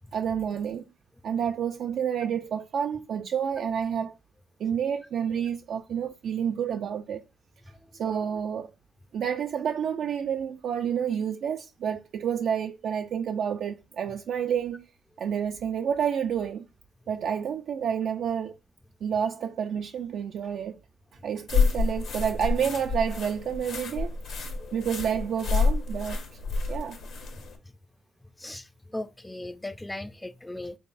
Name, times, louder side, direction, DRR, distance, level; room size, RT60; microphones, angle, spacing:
voice 1, 0.1-0.8 1.2-4.2 4.6-7.3 7.9-8.7 9.1-14.9 15.2-16.7 17.1-18.5 19.0-20.8 21.2-26.2 26.7-27.0, right 8 dB, 65° right, 0.3 m, -29 dB
sound 1, 21.5-27.6, left 4 dB, 75° left, 1.2 m, -28 dB
voice 2, 28.4-30.7, left 1 dB, 10° left, 0.4 m, -38 dB
4.0 x 3.5 x 2.5 m
cardioid pair, 90°, 0 cm